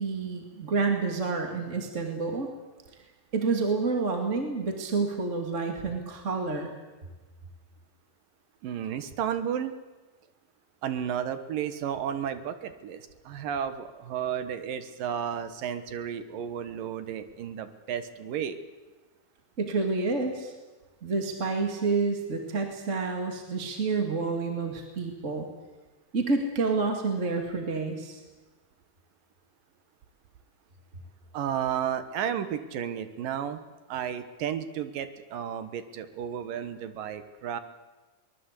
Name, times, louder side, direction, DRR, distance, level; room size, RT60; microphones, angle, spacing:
voice 1, 0.0-2.5 3.3-6.7 19.6-20.5 21.0-25.5 26.1-28.2, right 4 dB, 25° right, 3 dB, 2.1 m, -29 dB
voice 2, 8.6-9.7 10.8-18.6 31.3-33.6 33.9-37.6, right 9 dB, 70° right, 11 dB, 2.8 m, -33 dB
23.5 x 20.5 x 8.4 m, 1.2 s
omnidirectional pair, 4.4 m